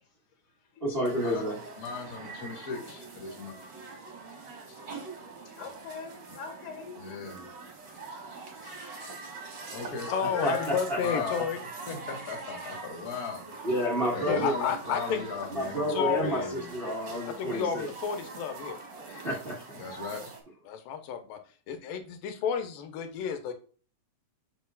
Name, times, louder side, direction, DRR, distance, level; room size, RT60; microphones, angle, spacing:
voice 1, 0.8-1.6 10.2-11.2 13.6-14.5 15.5-17.9 19.0-19.8, equal, 75° right, -3 dB, 0.5 m, -30 dB
sound 1, 1.0-20.4, right 3 dB, 40° right, 1.8 m, -43 dB
voice 2, 1.8-3.6 4.7-4.8 7.0-7.5 8.1-8.2 9.7-10.1 11.0-11.4 11.9-13.4 14.1-16.7 17.1-17.2 19.8-20.3, left 5 dB, 50° left, 2 dB, 1.1 m, -38 dB
voice 3, 4.8-7.8 8.3-9.5 10.1-10.7, left 5 dB, 65° left, 2 dB, 3.3 m, -43 dB
voice 4, 10.1-11.6 14.2-15.2 15.9-16.5 16.9-17.0 17.2-18.8 20.7-21.4 21.7-23.5, left 7 dB, 90° left, 6 dB, 2.7 m, -31 dB
9.4 x 5.1 x 2.4 m, 0.41 s
omnidirectional pair, 3.9 m